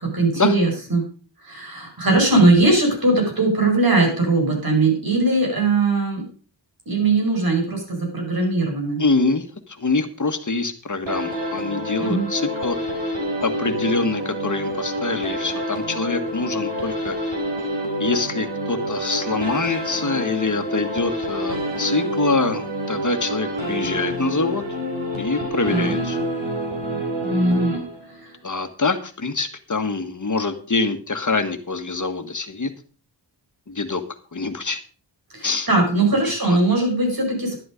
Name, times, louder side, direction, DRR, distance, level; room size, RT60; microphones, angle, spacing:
voice 1, 0.0-1.0 1.5-6.2 6.9-9.0 12.0-12.2 25.7-25.9 27.2-27.8 35.3-37.6, right 2 dB, 50° right, 1 dB, 5.4 m, -20 dB
voice 2, 9.0-12.8 13.4-17.1 18.0-24.6 25.2-26.2 28.4-32.7 33.7-34.0 34.3-34.8 35.4-35.7 36.3-36.6, left 3 dB, 40° left, 8 dB, 1.5 m, -25 dB
sound 1, 11.1-28.3, equal, 80° right, 4.4 m, -27 dB
11.0 x 11.0 x 5.1 m, 0.40 s
wide cardioid pair, 90°, 44 cm